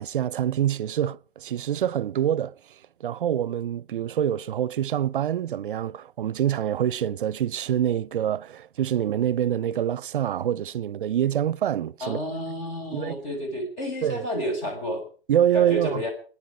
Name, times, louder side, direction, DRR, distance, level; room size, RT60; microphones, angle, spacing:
voice 1, 0.0-2.5 3.0-12.2 12.9-13.1 14.0-14.3 15.3-16.0, right 10 dB, 60° right, 0.7 m, -25 dB
voice 2, 12.0-15.1 15.5-16.1, equal, 30° left, 6.2 m, -30 dB
28.0 x 10.0 x 5.0 m
hypercardioid pair, 170°, 29 cm